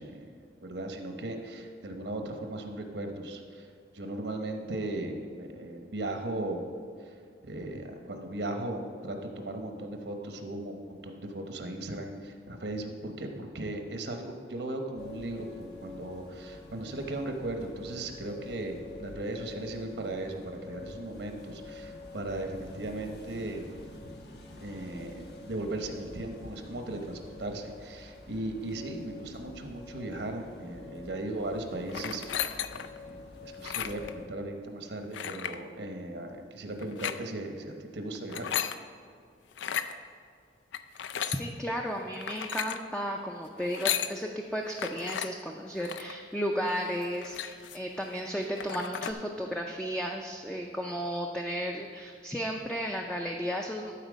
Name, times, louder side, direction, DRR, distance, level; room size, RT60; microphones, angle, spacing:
voice 1, 0.0-3.7 3.9-6.6 7.0-7.2 7.4-23.7 24.6-33.2 33.4-38.6, right 1 dB, 75° right, 4 dB, 0.9 m, -37 dB
sound 1, 15.0-34.3, left 2 dB, 65° left, 1.1 m, -47 dB
sound 2, 31.9-33.0 33.5-34.1 35.1-35.6 36.8-37.2 38.1-38.8 39.5-39.9 40.7-41.4 42.2-42.8 43.6-44.1 44.8-45.3 45.8-46.1 46.7-46.8 47.0-47.9 48.3-48.4 48.6-49.1, left 9 dB, 85° left, 0.4 m, -34 dB
voice 2, 41.0-53.9, equal, 5° left, 1 dB, 0.4 m, -34 dB
12.0 x 4.4 x 5.1 m, 2.3 s
head